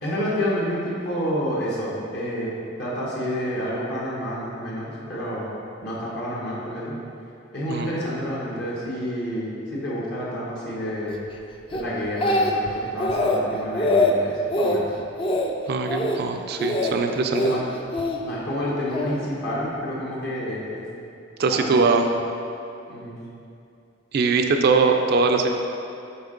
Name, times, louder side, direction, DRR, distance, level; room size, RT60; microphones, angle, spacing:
voice 1, 0.0-2.5 2.8-5.5 5.8-7.0 7.5-11.2 11.7-14.8 17.4-17.7 18.2-20.8 21.5-21.9 22.9-23.2, equal, 60° left, -6 dB, 1.1 m, -29 dB
Speech, 11.7-12.7 13.0-13.4 13.7-14.1 14.5-14.8 15.2-15.5 15.9-16.2 16.6-16.9 17.3-18.2 18.9-19.2, left 1 dB, 25° left, 0.4 m, -22 dB
voice 2, 15.7-17.5 21.4-22.0 24.1-25.5, right 4 dB, 55° right, 4 dB, 0.4 m, -21 dB
6.9 x 4.4 x 3.8 m, 2.6 s
head